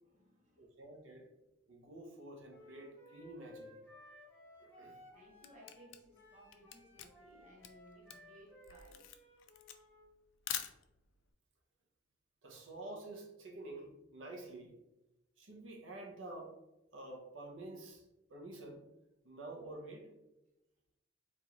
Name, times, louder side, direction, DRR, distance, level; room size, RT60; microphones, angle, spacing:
voice 1, 0.0-0.7 4.8-9.4 9.8-9.9, equal, 40° right, -2 dB, 1.0 m, -61 dB
voice 2, 0.6-1.3 1.7-3.7 4.6-5.0 12.4-14.8 15.4-16.5 16.9-18.9 19.2-20.1, right 2 dB, 75° right, 1 dB, 0.8 m, -49 dB
Wind instrument woodwind instrument, 2.5-10.0, left 1 dB, 10° left, 0.9 m, -59 dB
Camera, 5.0-11.2, left 11 dB, 70° left, 0.4 m, -46 dB
4.0 x 2.6 x 2.9 m, 0.96 s
head